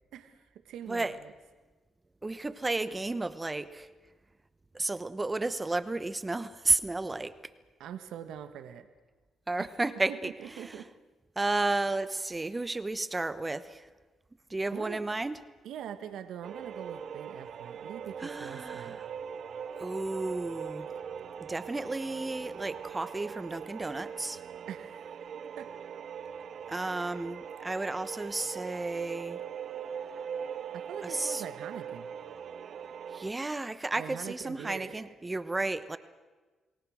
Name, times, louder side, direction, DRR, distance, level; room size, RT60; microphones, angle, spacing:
voice 1, 0.1-1.3 7.8-8.9 9.6-9.7 10.2-10.9 14.7-15.0 15.6-19.0 24.7-25.1 25.6-25.7 26.9-27.2 30.7-32.1 33.9-35.0, right 9 dB, 80° right, 9 dB, 1.5 m, -43 dB
voice 2, 2.2-3.9 4.7-7.4 9.5-10.8 11.4-13.9 14.5-15.4 18.2-19.0 19.8-20.9 21.4-24.4 26.7-29.4 31.0-31.4 33.1-36.0, right 2 dB, 20° right, 13 dB, 1.1 m, -32 dB
sound 1, 16.4-33.3, right 7 dB, 60° right, 0.7 m, -41 dB
28.5 x 19.0 x 6.5 m, 1.3 s
cardioid pair, 90°, 0 cm